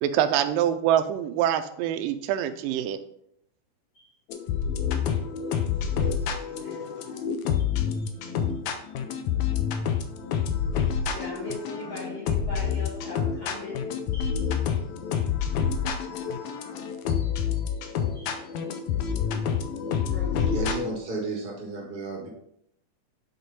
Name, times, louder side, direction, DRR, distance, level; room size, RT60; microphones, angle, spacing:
voice 1, 0.0-3.0, right 10 dB, 85° right, 9 dB, 2.3 m, -25 dB
sound 1, 4.3-20.9, left 7 dB, 75° left, 1.7 m, -28 dB
voice 2, 6.4-7.0 11.1-13.9 14.1-14.4 18.1-18.4 20.1-20.5, left 2 dB, 55° left, -4 dB, 1.4 m, -39 dB
voice 3, 20.5-22.3, right 3 dB, 35° right, -1 dB, 0.8 m, -33 dB
8.0 x 4.4 x 4.2 m, 0.73 s
omnidirectional pair, 3.9 m